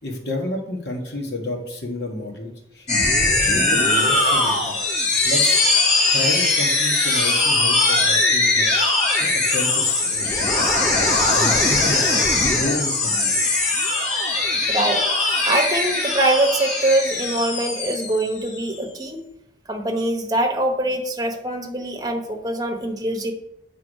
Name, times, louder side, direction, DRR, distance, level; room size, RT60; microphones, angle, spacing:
voice 1, 0.0-2.9 3.2-4.8 5.2-5.8 6.1-8.8 9.2-10.8 11.3-13.4, left 1 dB, 65° left, 1 dB, 1.7 m, -30 dB
sound 1, 2.9-18.7, left 2 dB, 40° left, 1.9 m, -20 dB
voice 2, 14.7-15.0 15.4-19.2 19.7-23.3, right 1 dB, 20° right, 2 dB, 1.0 m, -23 dB
7.7 x 3.6 x 6.3 m, 0.83 s
head